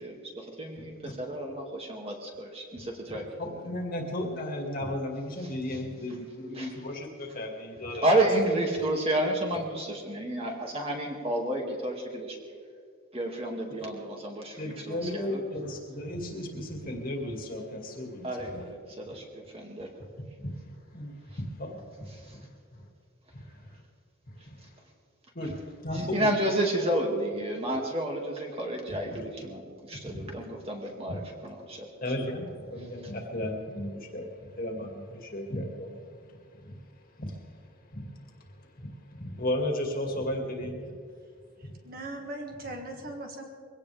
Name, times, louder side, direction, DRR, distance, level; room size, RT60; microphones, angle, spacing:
voice 1, 0.0-3.2 6.6-6.7 8.0-12.4 13.1-15.4 18.2-19.9 22.2-22.4 25.9-31.9, right 1 dB, 25° right, 0 dB, 2.2 m, -31 dB
voice 2, 0.7-1.2 2.8-2.9 3.4-8.2 13.8-13.9 14.6-18.7 19.1-19.2 20.4-22.5 22.7-22.8 23.3-23.7 24.4-24.7 25.3-25.5 25.8-26.3 28.9-29.3 30.1-30.5 31.1-31.2 32.0-40.9 41.6-41.7, left 1 dB, 40° left, 1 dB, 2.3 m, -35 dB
voice 3, 41.6-43.5, right 1 dB, 40° right, 1 dB, 2.0 m, -39 dB
22.5 x 17.0 x 3.5 m, 2.2 s
head